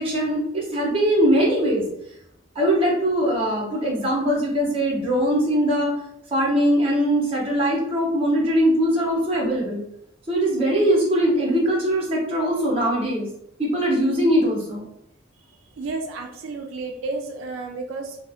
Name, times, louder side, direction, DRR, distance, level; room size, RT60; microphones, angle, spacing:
voice 1, 0.0-1.8 2.5-5.9 6.3-9.8 10.3-13.3 13.6-14.8, equal, 30° right, -3 dB, 0.7 m, -21 dB
voice 2, 15.5-18.2, right 3 dB, 90° right, 3 dB, 0.3 m, -32 dB
2.7 x 2.0 x 2.4 m, 0.78 s
head